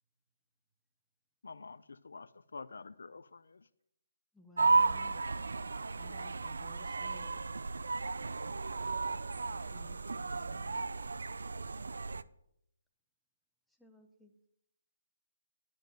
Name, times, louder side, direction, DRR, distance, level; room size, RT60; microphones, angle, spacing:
voice 1, 1.4-3.7, left 4 dB, 80° left, 0.5 m, -48 dB
voice 2, 4.3-5.2 5.9-7.4 9.5-10.8 13.7-14.5, left 1 dB, ahead, 0.8 m, -58 dB
sound 1, 4.6-12.2, right 3 dB, 85° right, 0.4 m, -34 dB
voice 3, 10.3-12.3, right 3 dB, 50° right, 1.5 m, -64 dB
10.5 x 5.2 x 7.5 m
hypercardioid pair, 165°, 0 cm